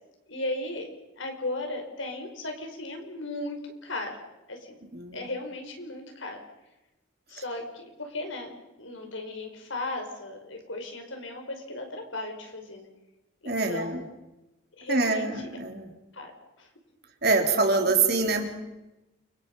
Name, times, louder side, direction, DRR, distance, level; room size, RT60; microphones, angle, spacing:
voice 1, 0.3-0.9 1.2-4.2 4.5-4.8 5.1-6.4 7.3-12.9 13.4-14.1 14.8-15.3 16.1-16.3 16.6-16.7, left 2 dB, 80° left, 4 dB, 5.4 m, -36 dB
voice 2, 4.9-5.3 13.4-14.0 14.9-15.9 17.2-18.4, right 3 dB, 50° right, 3 dB, 3.7 m, -25 dB
29.0 x 25.0 x 5.6 m, 0.98 s
head